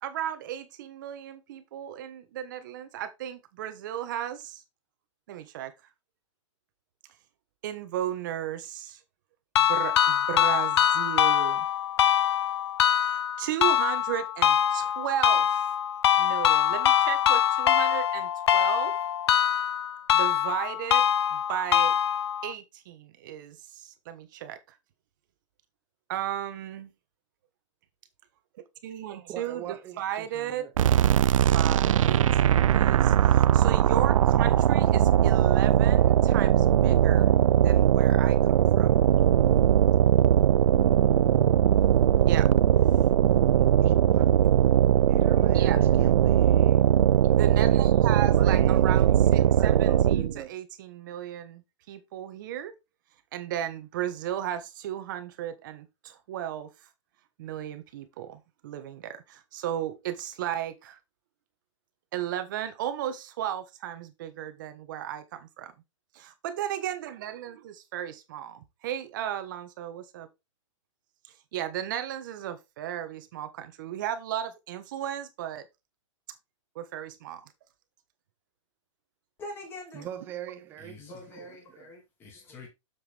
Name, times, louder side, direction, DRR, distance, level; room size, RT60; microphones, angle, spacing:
voice 1, 0.0-4.6 5.3-5.7 7.6-9.0 9.6-11.7 13.0-15.7 16.2-18.9 20.1-21.0 21.3-21.9 22.4-24.6 26.1-26.9 28.8-30.7 31.4-38.9 42.2-42.5 43.6-43.7 45.5-45.9 47.3-52.7 53.3-56.9 57.4-61.0 62.1-65.7 66.1-70.3 71.2-75.6 76.7-77.4, right 11 dB, 40° right, 1.2 m, -35 dB
sound 1, 9.5-22.5, left 10 dB, 55° left, 0.5 m, -24 dB
voice 2, 29.3-30.7 43.8-44.4 45.1-46.9 48.3-48.9 49.3-50.5 79.9-81.0 81.4-81.9, right 10 dB, 15° right, 0.5 m, -42 dB
sound 2, 30.8-50.4, right 10 dB, 85° right, 0.4 m, -20 dB
voice 3, 79.4-80.1 80.8-82.7, left 1 dB, 15° left, 2.2 m, -44 dB
7.3 x 6.6 x 3.4 m
hypercardioid pair, 165°, 17 cm